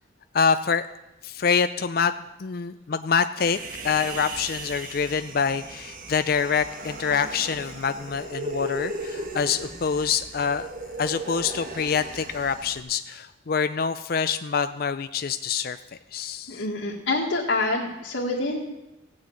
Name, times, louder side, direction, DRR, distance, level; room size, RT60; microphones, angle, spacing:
voice 1, 0.3-0.9 1.2-3.6 3.8-10.7 11.0-15.8 16.1-16.6, left 6 dB, 50° left, 9 dB, 0.4 m, -26 dB
Human voice, 3.4-12.8, right 2 dB, 45° right, 1.3 m, -37 dB
voice 2, 16.5-18.6, left 2 dB, 75° left, -4 dB, 1.9 m, -26 dB
16.5 x 6.5 x 8.6 m, 0.96 s
head